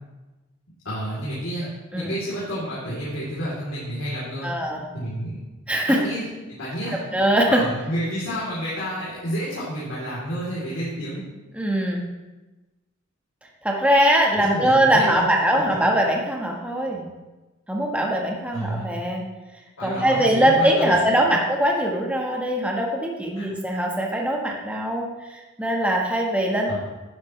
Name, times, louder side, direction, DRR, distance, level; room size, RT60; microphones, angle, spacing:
voice 1, 0.8-1.7 1.9-4.5 4.9-5.4 6.0-7.0 7.5-11.2 14.4-15.4 18.5-18.8 19.8-20.9 23.3-23.5 26.7-26.8, equal, 80° left, -9 dB, 3.4 m, -30 dB
voice 2, 4.4-4.8 5.7-6.0 7.1-7.6 11.5-12.0 13.6-17.1 17.7-19.2 19.8-26.7, right 1 dB, 5° right, -1 dB, 1.4 m, -21 dB
11.5 x 10.5 x 3.3 m, 1.1 s
head